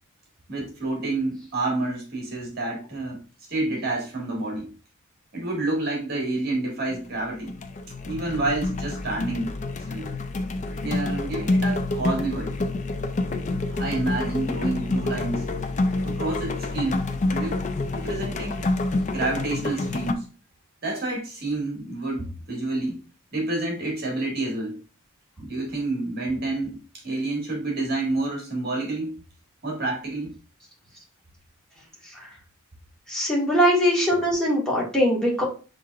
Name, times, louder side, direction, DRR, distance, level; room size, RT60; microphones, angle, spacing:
voice 1, 0.5-3.2 3.5-4.7 5.3-7.5 8.0-9.5 9.9-10.1 10.8-12.5 13.6-15.4 16.0-17.6 17.9-18.8 19.1-20.3 20.8-23.0 23.3-24.8 25.4-26.8 27.0-29.2 29.6-30.4, right 2 dB, 45° right, 1.7 m, -29 dB
sound 1, 6.9-7.2 7.5-20.1, left 2 dB, 35° left, 0.4 m, -28 dB
voice 2, 33.1-35.4, equal, 5° left, 1.5 m, -21 dB
6.4 x 3.3 x 2.4 m
head